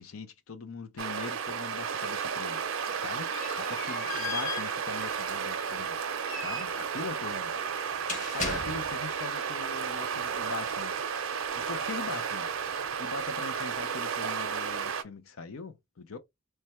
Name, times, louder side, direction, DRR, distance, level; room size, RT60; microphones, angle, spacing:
voice 1, 0.0-2.6 3.0-3.3 3.6-6.0 6.4-7.5 8.3-10.9 11.5-12.5 13.0-16.2, left 4 dB, 85° left, 0.6 m, -41 dB
sound 1, 1.0-15.0, right 6 dB, 75° right, 0.5 m, -33 dB
sound 2, 2.5-9.2, left 4 dB, 40° left, 1.1 m, -39 dB
3.3 x 2.1 x 4.2 m
head